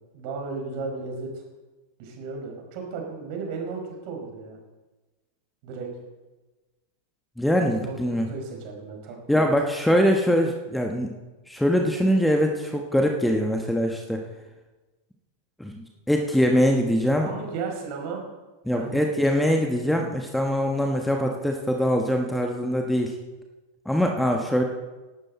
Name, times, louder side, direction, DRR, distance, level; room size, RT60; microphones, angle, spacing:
voice 1, 0.1-1.4 2.0-4.6 5.6-5.9 7.7-9.4 17.2-18.2 18.7-19.0, right 4 dB, 45° right, 2 dB, 4.8 m, -34 dB
voice 2, 7.4-8.3 9.3-11.1 11.5-14.2 15.6-17.3 18.6-23.2 23.8-24.6, equal, 5° left, 2 dB, 1.4 m, -23 dB
17.5 x 12.5 x 4.3 m, 1.2 s
figure-of-eight pair, 90°, 0 cm